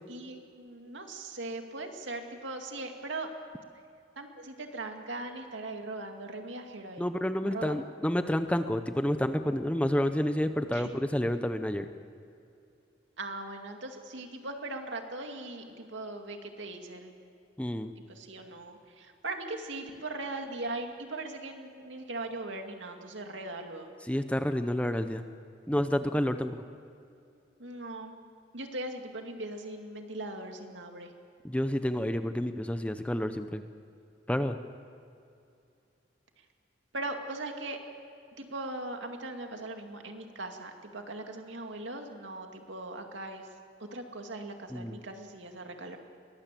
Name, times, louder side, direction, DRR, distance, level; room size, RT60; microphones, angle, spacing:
voice 1, 0.1-3.3 4.2-7.1 7.4-7.7 10.7-10.9 13.2-17.1 18.1-23.9 27.6-28.2 28.5-31.1 36.9-37.8 38.4-43.5 43.8-46.0, right 2 dB, 75° right, 4 dB, 2.4 m, -39 dB
voice 2, 7.0-11.9 17.6-17.9 24.1-25.2 25.7-26.6 31.4-33.6 34.3-34.6 44.7-45.0, equal, 5° left, 9 dB, 0.7 m, -29 dB
22.5 x 19.5 x 7.5 m, 2.5 s
head